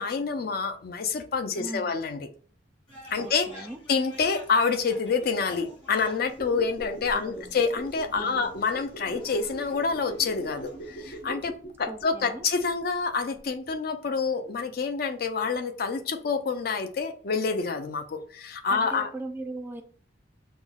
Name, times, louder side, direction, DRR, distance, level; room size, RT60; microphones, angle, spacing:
voice 1, 0.0-2.3 3.1-19.1, left 5 dB, 55° left, 7 dB, 0.5 m, -28 dB
voice 2, 1.6-2.0 3.2-3.8 6.8-7.5 8.1-8.5 11.9-12.4 18.7-19.8, right 2 dB, 10° right, 4 dB, 0.3 m, -39 dB
sound 1, 2.9-11.2, left 1 dB, 25° left, 1.7 m, -50 dB
sound 2, 6.3-13.1 13.4-13.5, right 1 dB, 80° left, 1.3 m, -42 dB
5.5 x 2.0 x 2.3 m, 0.43 s
head